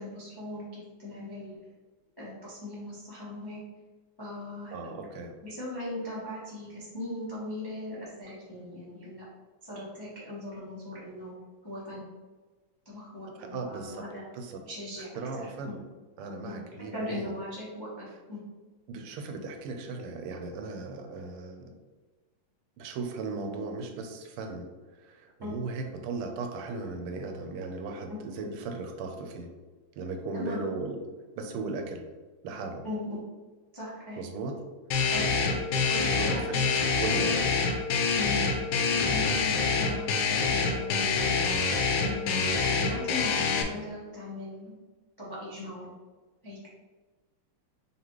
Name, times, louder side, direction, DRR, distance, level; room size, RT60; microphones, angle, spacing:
voice 1, 0.0-1.6 2.2-3.6 4.2-4.7 5.4-9.2 9.6-11.3 11.6-12.0 12.8-14.3 14.6-15.1 15.3-15.5 16.4-16.5 16.9-18.4 25.4-25.6 28.1-28.2 30.3-30.7 32.8-33.2 33.7-34.2 35.1-35.4 35.9-36.6 38.2-38.5 38.9-41.3 42.0-44.7 45.2-45.9 46.4-46.7, left 1 dB, 35° left, -8 dB, 0.3 m, -38 dB
voice 2, 4.7-5.4 13.4-14.0 14.3-14.6 15.1-15.8 16.2-17.3 18.9-21.7 22.8-29.5 30.0-31.0 31.4-32.0 32.4-32.8 34.2-34.6 35.7-37.6, right 3 dB, 85° right, 4 dB, 1.6 m, -37 dB
sound 1, 34.9-43.6, left 4 dB, 75° left, 1.3 m, -26 dB
4.1 x 3.4 x 3.0 m, 1.3 s
omnidirectional pair, 2.4 m